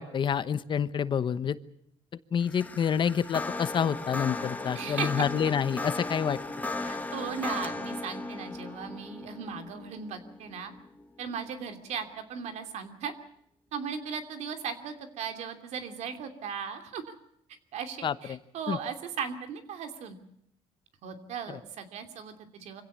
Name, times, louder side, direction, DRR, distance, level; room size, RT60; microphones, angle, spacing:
voice 1, 0.0-1.6 2.3-6.4 18.0-18.4 18.7-18.8 21.5-21.6, left 8 dB, 45° left, 15 dB, 0.9 m, -28 dB
sound 1, 2.4-11.8, left 2 dB, 15° left, 1.5 m, -37 dB
voice 2, 4.7-5.3 6.8-10.7 11.2-13.1 13.7-17.0 17.7-20.2 21.0-22.8, right 7 dB, 80° right, 7 dB, 2.8 m, -37 dB
25.0 x 16.5 x 8.5 m, 0.76 s
cardioid pair, 125°, 11 cm